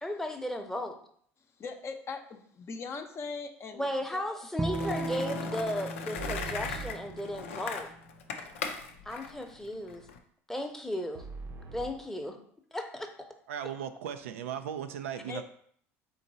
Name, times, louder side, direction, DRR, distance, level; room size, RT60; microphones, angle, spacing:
voice 1, 0.0-1.0 3.7-7.9 9.0-10.0 10.5-11.2 11.7-12.4 12.7-13.1, left 1 dB, 5° left, 0.8 m, -35 dB
voice 2, 1.6-3.9 4.1-4.2 15.3-15.4, left 4 dB, 40° left, 0.6 m, -40 dB
Bowed string instrument, 4.6-7.9, right 2 dB, 10° right, 0.3 m, -37 dB
Skateboard, 4.7-10.2, left 5 dB, 90° left, 0.5 m, -38 dB
Analog impacts, 6.1-7.8 11.1-12.0, right 5 dB, 45° right, 0.7 m, -43 dB
voice 3, 13.5-15.4, right 9 dB, 85° right, 0.4 m, -37 dB
3.9 x 3.0 x 4.0 m
hypercardioid pair, 75°, 7 cm